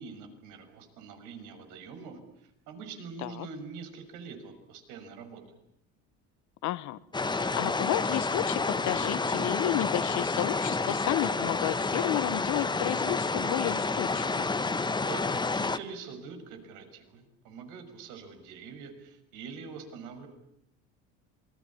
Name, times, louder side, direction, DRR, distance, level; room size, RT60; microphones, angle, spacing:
voice 1, 0.0-5.4 15.0-20.3, right 5 dB, 75° right, 7 dB, 6.3 m, -44 dB
voice 2, 6.6-7.0 7.3-14.5, left 16 dB, 65° left, 17 dB, 1.4 m, -32 dB
sound 1, 7.1-15.8, left 3 dB, 15° left, 1.3 m, -29 dB
27.5 x 22.0 x 8.7 m, 0.75 s
supercardioid pair, 110°, 32 cm